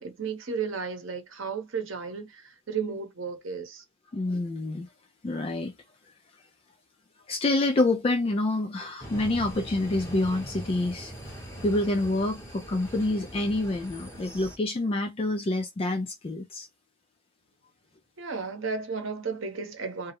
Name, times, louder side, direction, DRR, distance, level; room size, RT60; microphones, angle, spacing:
voice 1, 0.0-3.8 18.2-20.1, right 5 dB, 80° right, 0.8 m, -34 dB
voice 2, 4.1-4.9 5.2-5.7 7.3-11.1 11.6-16.7, left 2 dB, 30° left, 0.3 m, -27 dB
sound 1, 9.0-14.6, right 1 dB, 15° left, 0.9 m, -41 dB
2.3 x 2.0 x 2.8 m
head